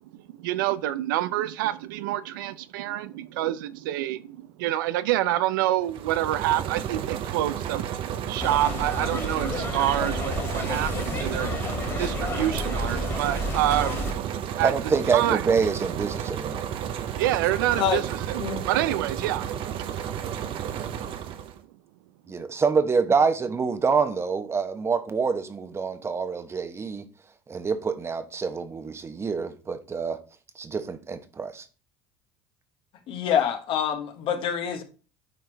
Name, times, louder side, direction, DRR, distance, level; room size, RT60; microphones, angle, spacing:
voice 1, 0.4-14.1 14.6-14.7 15.1-15.4 17.2-19.5, right 14 dB, 85° right, 0.5 m, -27 dB
sound 1, 5.8-21.6, right 9 dB, 55° right, 0.8 m, -32 dB
sound 2, 8.4-14.1, left 2 dB, 25° left, 2.3 m, -31 dB
voice 2, 14.6-16.6 22.3-27.1 27.5-30.2 30.5-31.7, right 5 dB, 25° right, 1.0 m, -26 dB
voice 3, 33.1-34.8, left 8 dB, 55° left, 1.4 m, -26 dB
9.2 x 4.5 x 3.3 m
supercardioid pair, 100°, 11 cm